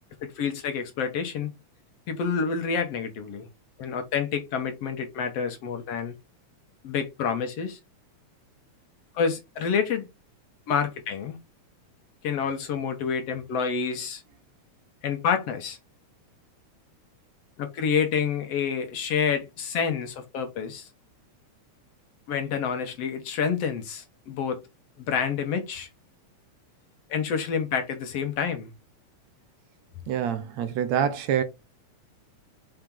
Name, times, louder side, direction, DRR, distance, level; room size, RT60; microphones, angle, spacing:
voice 1, 0.2-1.5 2.1-3.5 3.8-6.2 6.8-7.8 9.2-10.1 10.7-11.4 12.2-14.2 15.0-15.8 17.6-20.9 22.3-24.6 25.0-25.9 27.1-28.7, left 6 dB, 65° left, 2.1 m, -28 dB
voice 2, 30.1-31.4, right 9 dB, 70° right, 2.2 m, -26 dB
5.9 x 5.2 x 3.8 m
omnidirectional pair, 3.3 m